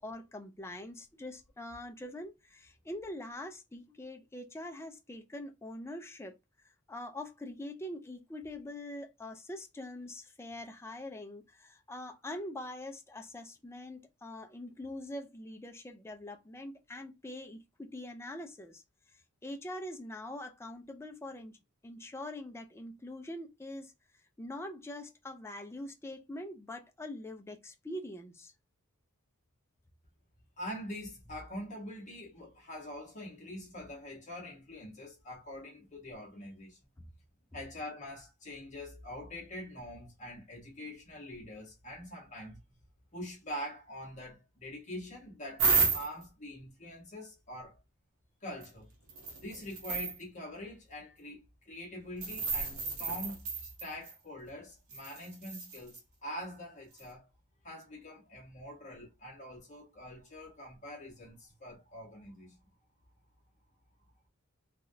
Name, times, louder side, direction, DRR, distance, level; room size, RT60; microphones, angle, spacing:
voice 1, 0.0-6.3 6.9-18.8 19.4-21.6 21.8-23.9 24.4-28.5 37.0-37.1, left 1 dB, 10° left, 0.4 m, -43 dB
voice 2, 30.6-36.8 37.5-42.6 43.1-47.8 48.4-48.9 49.4-57.3 57.6-62.6, left 1 dB, 35° left, 1.1 m, -44 dB
sound 1, 45.6-46.2 48.6-48.7 49.1-50.2 52.2-54.1 54.9-56.0 57.0-57.1, right 4 dB, 75° right, 0.9 m, -32 dB
3.3 x 2.3 x 2.7 m
head